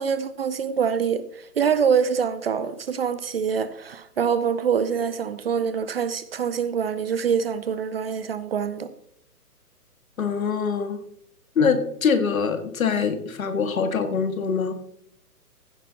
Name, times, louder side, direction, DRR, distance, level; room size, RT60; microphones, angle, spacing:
voice 1, 0.0-8.9, right 7 dB, 40° right, 0.6 m, -25 dB
voice 2, 10.2-11.0 11.6-14.7, left 6 dB, 60° left, 1.8 m, -24 dB
15.5 x 9.2 x 2.9 m
figure-of-eight pair, 135°, 47 cm